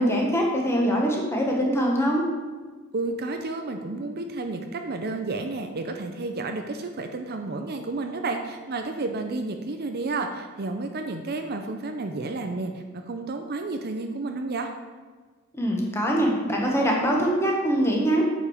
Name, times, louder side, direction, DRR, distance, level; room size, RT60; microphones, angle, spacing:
voice 1, 0.0-2.3 15.6-18.2, equal, 10° left, -1 dB, 1.7 m, -23 dB
voice 2, 2.9-14.7, right 3 dB, 45° right, 5 dB, 0.6 m, -31 dB
8.5 x 5.3 x 6.5 m, 1.4 s
head